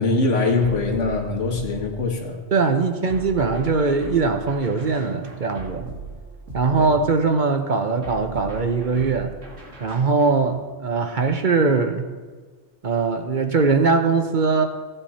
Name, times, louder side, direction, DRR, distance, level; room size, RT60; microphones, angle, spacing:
voice 1, 0.0-2.4 6.8-6.9, left 3 dB, 85° left, 3 dB, 1.8 m, -22 dB
sound 1, 0.6-2.3 3.1-7.3 8.0-10.5, right 4 dB, 85° right, 2.4 m, -39 dB
voice 2, 2.5-5.9 6.5-9.3 9.8-12.0 12.8-14.6, right 4 dB, 45° right, 7 dB, 0.9 m, -21 dB
15.5 x 8.9 x 4.2 m, 1.4 s
omnidirectional pair, 1.2 m